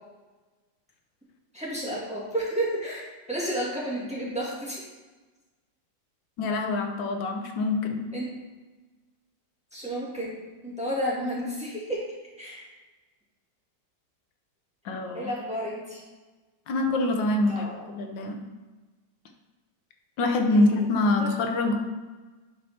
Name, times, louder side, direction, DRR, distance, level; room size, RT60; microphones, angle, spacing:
voice 1, 1.5-4.8 8.1-8.3 9.7-12.0 12.4-12.7 15.1-16.0 17.5-17.8 20.5-20.6 21.2-21.3, right 1 dB, 5° right, -7 dB, 2.1 m, -31 dB
voice 2, 6.4-8.1 14.8-15.3 16.7-18.4 20.2-21.8, left 2 dB, 85° left, 4 dB, 1.6 m, -25 dB
11.0 x 4.2 x 4.3 m, 1.3 s
omnidirectional pair, 2.0 m